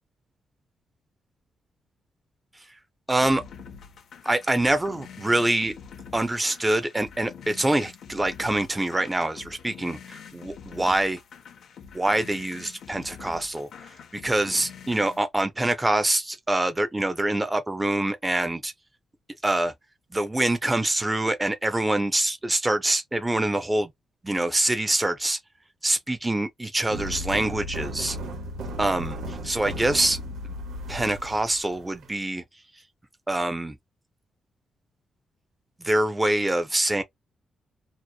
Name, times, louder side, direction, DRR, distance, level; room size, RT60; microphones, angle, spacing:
voice 1, 3.1-3.4 4.2-5.8 6.1-11.2 11.9-18.7 19.4-19.7 20.1-23.9 24.2-25.4 25.8-28.2 28.8-30.2 30.4-30.5 30.9-32.4 33.3-33.8 35.8-37.0, right 1 dB, 10° right, 0.5 m, -25 dB
sound 1, 3.2-15.2, left 7 dB, 60° left, 0.6 m, -45 dB
sound 2, 26.9-32.1, equal, 90° right, 0.7 m, -35 dB
2.8 x 2.0 x 2.2 m
wide cardioid pair, 155°, 0 cm